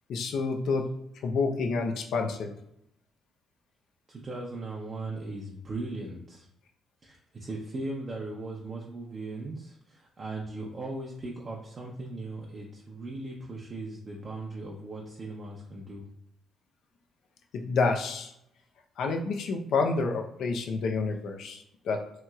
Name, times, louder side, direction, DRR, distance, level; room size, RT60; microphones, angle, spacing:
voice 1, 0.1-0.8 1.2-2.5 17.5-18.3 19.0-22.0, left 4 dB, 75° left, 3 dB, 0.5 m, -28 dB
voice 2, 4.1-6.5 7.0-16.1, right 2 dB, 40° right, -2 dB, 0.5 m, -38 dB
2.9 x 2.9 x 2.3 m, 0.76 s
cardioid pair, 90°, 0 cm